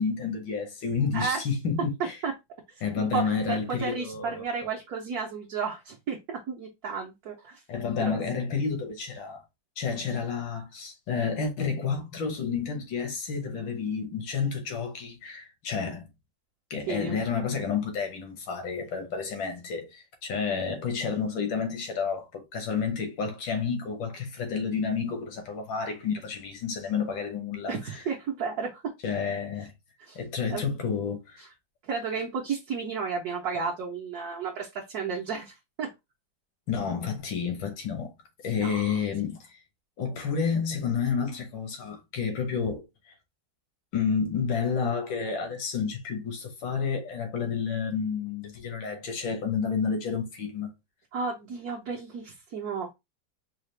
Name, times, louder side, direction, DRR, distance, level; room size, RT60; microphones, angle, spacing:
voice 1, 0.0-2.2 2.8-4.4 7.7-9.4 9.8-16.1 16.7-27.7 29.0-29.7 30.2-31.4 36.7-38.1 38.4-39.6 40.0-42.9 43.9-50.7, left 6 dB, 80° left, 1.8 m, -30 dB
voice 2, 2.7-7.6 8.0-8.2 16.9-17.2 27.7-28.8 30.0-30.2 30.5-30.6 31.4-31.5 31.8-35.9 38.5-39.0 51.1-52.9, right 5 dB, 60° right, 1.2 m, -33 dB
4.8 x 2.4 x 3.2 m
omnidirectional pair, 2.1 m